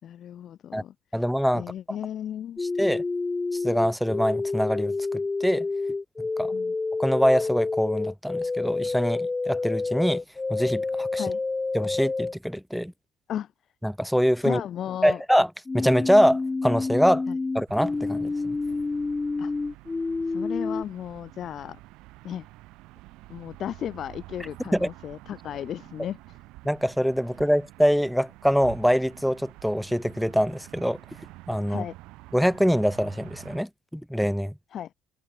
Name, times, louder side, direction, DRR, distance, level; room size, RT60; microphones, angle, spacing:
voice 1, 0.0-1.2 1.5-2.6 6.5-6.7 11.2-11.4 13.3-13.5 14.4-15.2 17.3-17.4 19.4-19.5 20.2-21.8 22.2-22.5 23.3-26.4 31.7-32.0 34.7-34.9, left 10 dB, 55° left, 5.6 m, -35 dB
voice 2, 1.1-1.6 2.8-3.0 3.6-4.9 5.4-5.7 6.4-6.5 7.0-10.2 10.5-11.2 11.7-12.9 13.8-14.6 15.0-15.5 15.7-17.2 17.5-18.6 24.7-24.9 26.6-31.0 31.5-31.8 32.3-34.5, equal, ahead, 0.9 m, -24 dB
sound 1, 2.6-12.3 15.7-20.8, left 3 dB, 25° left, 0.6 m, -28 dB
sound 2, 17.7-33.6, right 20 dB, 70° right, 3.2 m, -48 dB
hypercardioid pair, 55°, 0 cm